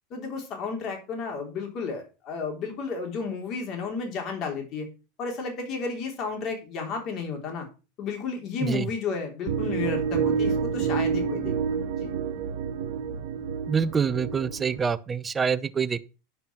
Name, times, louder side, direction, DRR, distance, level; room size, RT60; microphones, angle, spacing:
voice 1, 0.1-4.9 5.2-7.7 8.0-11.5 12.0-12.1, left 4 dB, 45° left, 3.6 m, -32 dB
sound 1, 9.5-14.8, right 6 dB, 65° right, 1.4 m, -28 dB
voice 2, 13.7-16.0, right 6 dB, 20° right, 0.7 m, -26 dB
11.0 x 5.4 x 5.7 m
hypercardioid pair, 105°, 0 cm